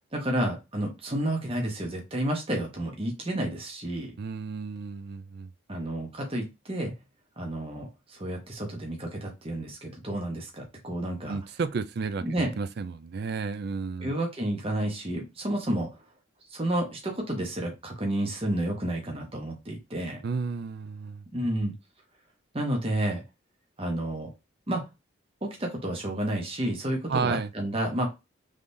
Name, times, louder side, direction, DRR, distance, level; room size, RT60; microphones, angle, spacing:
voice 1, 0.1-4.1 5.7-7.0 7.4-11.4 12.2-12.5 14.0-16.0 16.5-20.2 21.3-21.7 22.5-23.2 23.8-24.3 24.7-24.9 25.4-28.1, right 1 dB, 30° right, 0.9 m, -30 dB
voice 2, 4.2-5.5 11.3-14.1 20.2-21.2 27.1-27.5, right 5 dB, 50° right, 0.4 m, -32 dB
3.6 x 3.3 x 2.6 m
head